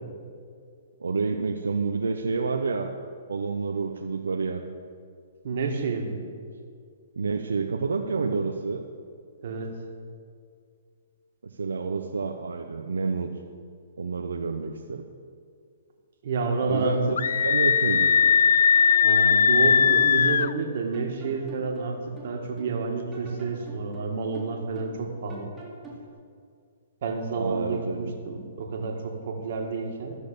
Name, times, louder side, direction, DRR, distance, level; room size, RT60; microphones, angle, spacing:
voice 1, 1.0-2.9 3.3-4.6 7.2-8.8 11.4-13.3 14.0-15.0 16.6-18.1 27.4-28.1, right 4 dB, 90° right, 3 dB, 0.7 m, -29 dB
voice 2, 5.4-6.3 9.4-9.8 16.2-17.2 19.0-25.5 27.0-30.2, right 4 dB, 60° right, 2 dB, 1.9 m, -30 dB
Screaming, 17.2-20.5, left 7 dB, 75° left, 0.3 m, -19 dB
sound 1, 17.4-18.4 18.7-20.7 20.9-22.8 23.1-25.0 25.3-26.1, right 2 dB, 10° right, 2.4 m, -45 dB
14.0 x 6.3 x 6.9 m, 2.2 s
hypercardioid pair, 140°, 0 cm